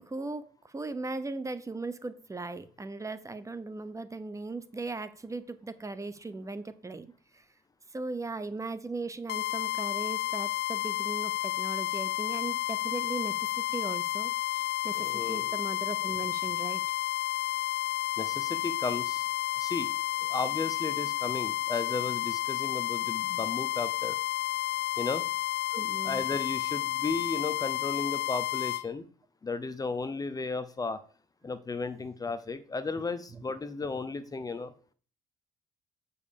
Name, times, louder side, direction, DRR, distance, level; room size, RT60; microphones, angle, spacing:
voice 1, 0.0-7.4 7.9-14.3 14.8-16.8 25.7-26.3 33.3-33.4, right 3 dB, 20° right, 13 dB, 0.9 m, -38 dB
sound 1, 9.3-28.8, left 14 dB, 70° left, 0.9 m, -31 dB
voice 2, 15.0-15.5 18.2-19.3 19.5-19.9 20.2-24.2 25.0-25.3 26.0-29.1 29.4-31.0 31.4-34.7, left 4 dB, 20° left, 12 dB, 0.8 m, -34 dB
7.8 x 5.5 x 6.9 m, 0.41 s
cardioid pair, 110°, 17 cm